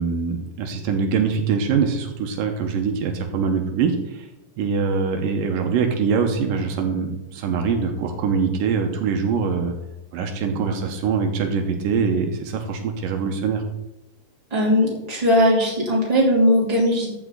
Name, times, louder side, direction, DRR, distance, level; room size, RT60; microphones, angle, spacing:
voice 1, 0.0-4.3 4.6-9.7 10.1-13.6, right 5 dB, 80° right, 5 dB, 2.7 m, -23 dB
voice 2, 14.5-17.1, equal, 10° right, -4 dB, 2.6 m, -19 dB
14.0 x 6.2 x 3.8 m, 0.92 s
omnidirectional pair, 3.9 m